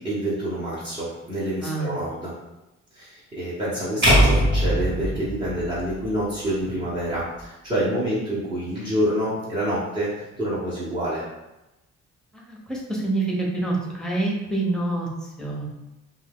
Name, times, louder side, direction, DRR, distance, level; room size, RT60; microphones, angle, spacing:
voice 1, 0.0-2.3 2.9-11.3, right 1 dB, 20° right, -10 dB, 1.0 m, -27 dB
voice 2, 1.6-1.9 4.0-4.1 12.3-15.7, right 2 dB, ahead, -2 dB, 0.8 m, -27 dB
sound 1, 4.0-6.3, equal, 40° right, 1.4 m, -21 dB
2.6 x 2.4 x 3.5 m, 0.98 s
cardioid pair, 90°, 30 cm